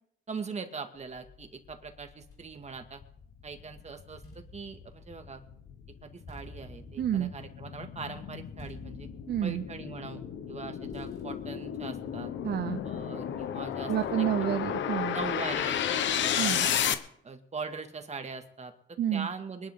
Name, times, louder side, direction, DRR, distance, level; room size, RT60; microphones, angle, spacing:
voice 1, 0.3-3.0 3.4-5.4 6.0-9.1 9.4-12.3 12.8-13.9 14.2-14.3 15.1-16.7 17.2-19.7, right 4 dB, 35° right, 6 dB, 2.1 m, -41 dB
sound 1, 2.2-2.3 2.8-16.9, left 9 dB, 70° left, 1.1 m, -33 dB
sound 2, 2.3-3.6 4.0-10.6 10.9-13.2 13.9-15.4 16.1-16.6, equal, 15° left, 5.3 m, -54 dB
voice 2, 7.0-7.3 9.3-9.6 12.4-12.8 13.9-15.2 16.4-16.7 19.0-19.3, right 11 dB, 55° right, 9 dB, 0.7 m, -29 dB
23.5 x 11.0 x 3.8 m, 0.70 s
cardioid pair, 90°, 20 cm